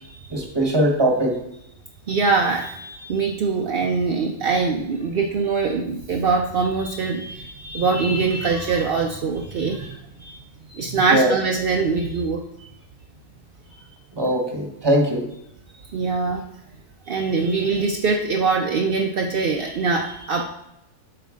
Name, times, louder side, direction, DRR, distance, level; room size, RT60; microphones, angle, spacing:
voice 1, 0.3-1.4 11.1-11.3 14.1-15.3, right 1 dB, 20° right, 2 dB, 0.9 m, -20 dB
voice 2, 2.1-10.4 10.7-12.4 15.8-16.4 17.0-20.4, right 4 dB, 65° right, 1 dB, 0.5 m, -23 dB
7.8 x 5.1 x 3.7 m, 0.81 s
omnidirectional pair, 1.7 m